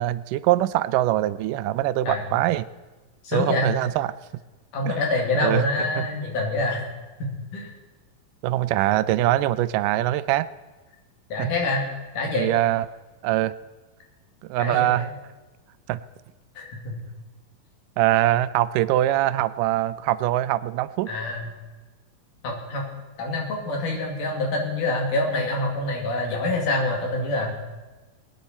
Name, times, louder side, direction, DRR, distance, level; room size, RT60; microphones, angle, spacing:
voice 1, 0.0-2.7 3.3-4.1 4.8-5.0 5.4-5.7 6.0-6.1 8.4-10.5 11.4-11.5 12.4-12.9 13.2-13.5 14.5-15.1 15.9-16.0 18.0-21.1, right 14 dB, 85° right, 15 dB, 2.2 m, -23 dB
voice 2, 3.2-3.7 4.7-6.9 7.2-7.7 11.3-11.9 12.1-12.5 14.6-15.1 16.6-17.0 21.1-21.5 22.4-22.9 23.2-27.5, left 2 dB, 75° left, 0 dB, 4.0 m, -26 dB
21.0 x 9.8 x 4.3 m, 1.2 s
omnidirectional pair, 3.7 m